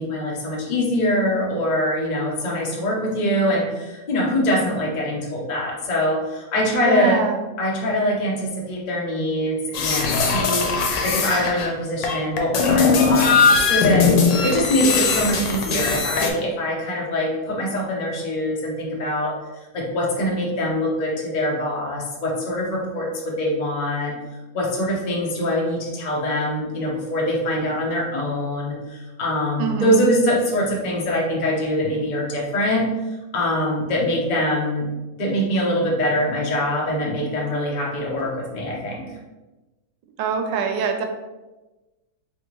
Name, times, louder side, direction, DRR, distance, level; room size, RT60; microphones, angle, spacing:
voice 1, 0.0-7.2 7.6-19.3 19.7-24.2 24.5-32.9 33.3-34.9 35.2-39.0, left 1 dB, 85° left, -3 dB, 0.4 m, -23 dB
voice 2, 6.8-7.4 29.6-30.1 40.2-41.0, right 6 dB, 75° right, 5 dB, 1.2 m, -24 dB
sound 1, 9.7-11.7 12.0-16.3, left 5 dB, 70° left, 1.2 m, -19 dB
4.0 x 3.4 x 3.1 m, 1.1 s
omnidirectional pair, 2.2 m